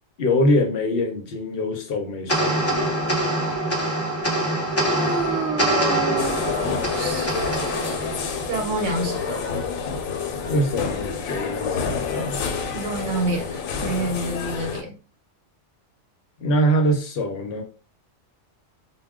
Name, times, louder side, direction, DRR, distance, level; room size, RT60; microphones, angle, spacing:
voice 1, 0.2-2.9 10.5-12.4 16.4-17.6, equal, 55° left, 0.8 m, -23 dB
sound 1, 2.3-8.9, right 1 dB, 15° left, 0.6 m, -24 dB
voice 2, 4.9-6.5 7.0-7.3 8.5-9.6 12.7-14.9, right 3 dB, 70° right, 1.1 m, -28 dB
sound 2, 6.2-14.8, left 6 dB, 85° left, 1.0 m, -28 dB
2.2 x 2.2 x 3.5 m
omnidirectional pair, 1.4 m